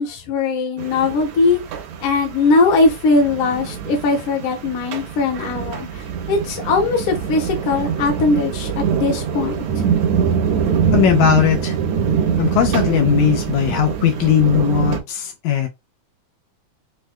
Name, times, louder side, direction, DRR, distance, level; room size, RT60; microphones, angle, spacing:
voice 1, 0.0-1.6 2.0-5.9 6.3-9.6, left 3 dB, 55° left, 1.7 m, -19 dB
sound 1, 0.8-15.0, right 7 dB, 70° right, 2.0 m, -24 dB
voice 2, 10.9-11.8 12.4-15.7, left 8 dB, 80° left, 2.0 m, -18 dB
6.2 x 2.4 x 2.2 m
omnidirectional pair, 3.5 m